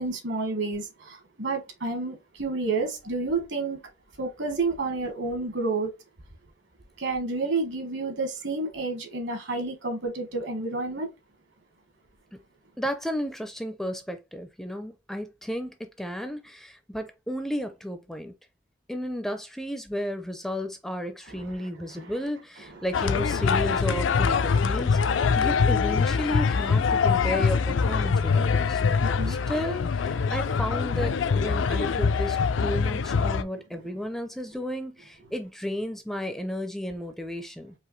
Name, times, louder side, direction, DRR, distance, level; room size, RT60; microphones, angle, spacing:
voice 1, 0.0-3.8 4.2-5.9 7.0-11.1 22.0-22.1 28.3-29.5, right 3 dB, 65° right, 1.3 m, -30 dB
voice 2, 12.8-18.3 18.9-28.8 29.3-37.7, equal, ahead, 0.4 m, -33 dB
sound 1, 22.9-33.4, left 5 dB, 75° left, 0.4 m, -24 dB
4.8 x 2.9 x 3.1 m
head